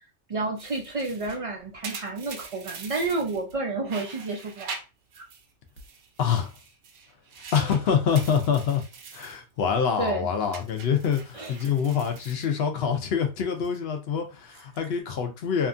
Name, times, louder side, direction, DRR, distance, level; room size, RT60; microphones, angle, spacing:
voice 1, 0.3-4.7 5.2-5.3 10.0-10.3 11.3-11.6, right 3 dB, 55° right, 0.3 m, -30 dB
sound 1, 0.6-3.6 3.9-5.5 5.8-9.4 9.8-10.1 10.5-13.1 13.4-13.8 14.4-15.0, right 5 dB, 75° right, 0.9 m, -43 dB
voice 2, 6.2-6.5 7.5-8.8 9.1-15.7, left 7 dB, 65° left, 0.8 m, -25 dB
2.8 x 2.4 x 2.5 m
omnidirectional pair, 1.2 m